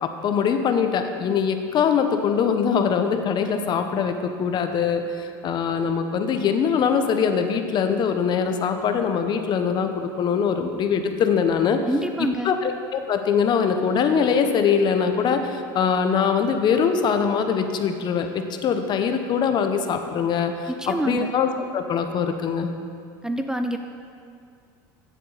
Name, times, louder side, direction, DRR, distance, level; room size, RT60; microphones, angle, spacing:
voice 1, 0.0-11.8 12.4-22.7, left 6 dB, 45° left, 7 dB, 1.0 m, -22 dB
voice 2, 11.8-12.5 20.7-21.3 23.2-23.8, right 1 dB, 5° right, 6 dB, 0.5 m, -27 dB
15.0 x 7.4 x 4.1 m, 2.3 s
supercardioid pair, 95°, 11 cm